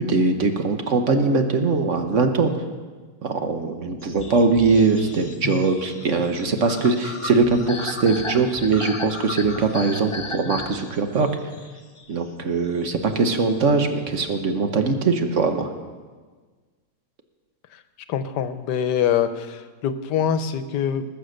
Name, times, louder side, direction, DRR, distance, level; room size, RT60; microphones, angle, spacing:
voice 1, 0.0-2.5 3.2-11.3 12.1-15.7, right 4 dB, 50° right, 6 dB, 1.3 m, -21 dB
sound 1, 4.0-14.4, left 3 dB, 30° left, 0.5 m, -36 dB
voice 2, 18.1-21.1, left 8 dB, 85° left, 11 dB, 1.4 m, -24 dB
20.5 x 6.9 x 6.5 m, 1.4 s
omnidirectional pair, 1.8 m